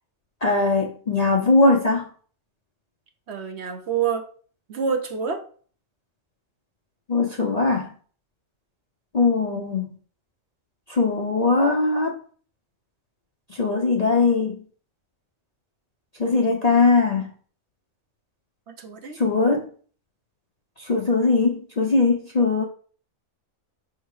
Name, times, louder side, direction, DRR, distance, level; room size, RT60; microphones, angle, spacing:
voice 1, 0.4-2.1 7.1-7.9 9.1-9.9 10.9-12.1 13.6-14.6 16.2-17.3 19.2-19.7 20.8-22.6, left 3 dB, 40° left, 1 dB, 0.6 m, -20 dB
voice 2, 3.3-4.2 4.7-5.4 18.7-19.2, right 6 dB, 60° right, 6 dB, 1.0 m, -27 dB
5.5 x 3.6 x 4.7 m, 0.43 s
omnidirectional pair, 1.4 m